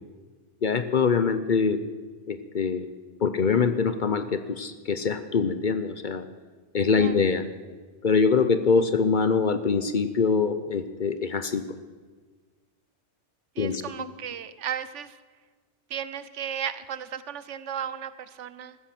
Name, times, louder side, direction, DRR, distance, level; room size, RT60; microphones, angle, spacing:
voice 1, 0.6-1.8 2.3-2.9 3.2-6.3 6.7-7.5 8.0-11.6 13.6-13.8, left 5 dB, 50° left, 11 dB, 0.8 m, -24 dB
voice 2, 13.6-15.2 15.9-18.8, right 9 dB, 75° right, 14 dB, 1.1 m, -35 dB
15.0 x 13.5 x 5.9 m, 1.4 s
omnidirectional pair, 1.2 m